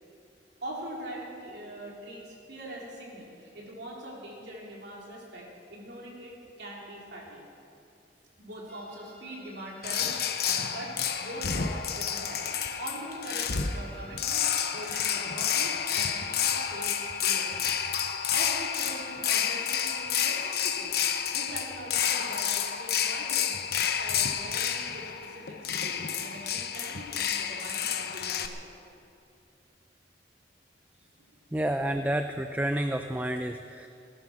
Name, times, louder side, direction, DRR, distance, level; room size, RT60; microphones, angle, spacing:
voice 1, 0.6-7.5 8.4-17.0 17.2-17.5 18.3-21.0 21.3-23.7 24.0-28.6 31.3-31.6, right 1 dB, 70° right, -3 dB, 3.8 m, -42 dB
sound 1, 8.7-20.6, right 4 dB, 10° left, 1.1 m, -50 dB
sound 2, 9.8-28.5, left 8 dB, 60° left, 0.9 m, -30 dB
voice 2, 31.5-33.9, right 1 dB, 10° right, 7 dB, 0.4 m, -29 dB
19.5 x 11.0 x 6.3 m, 2.6 s
head